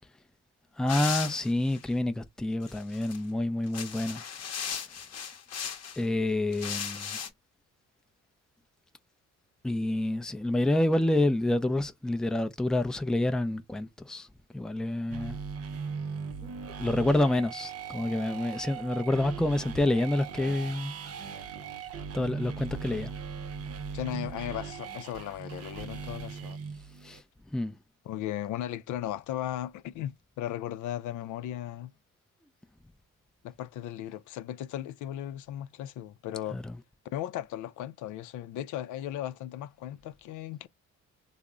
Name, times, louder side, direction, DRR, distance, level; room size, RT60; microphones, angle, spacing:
voice 1, 0.8-4.2 6.0-7.1 9.6-14.3 14.5-15.4 16.4-16.5 16.8-20.9 22.1-23.1 27.0-27.2 27.5-27.8 36.5-36.8, left 1 dB, ahead, 0.4 m, -28 dB
sound 1, 0.9-1.8 2.6-3.2 3.6-6.0 6.5-7.3, left 7 dB, 55° left, 0.8 m, -37 dB
sound 2, 15.1-27.2, right 6 dB, 55° right, 0.6 m, -39 dB
voice 2, 23.9-26.6 28.0-31.9 33.4-36.6 37.0-40.7, left 12 dB, 80° left, 0.5 m, -36 dB
3.4 x 2.0 x 3.7 m
cardioid pair, 90°, 30 cm